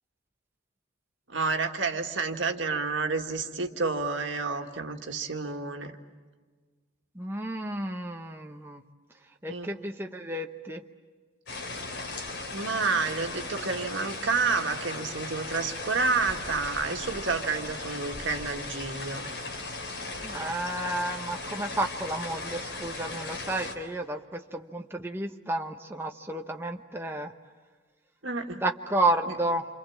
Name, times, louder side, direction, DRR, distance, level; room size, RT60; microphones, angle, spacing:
voice 1, 1.3-6.0 9.5-9.7 12.5-19.3 28.2-28.6 29.3-29.4, right 4 dB, 75° right, 4 dB, 2.0 m, -30 dB
voice 2, 7.2-8.8 9.4-10.8 20.2-27.3 28.6-29.7, right 1 dB, 10° right, 3 dB, 0.9 m, -31 dB
sound 1, 11.5-23.7, left 3 dB, 65° left, 3.8 m, -37 dB
29.0 x 27.0 x 7.4 m, 1.5 s
head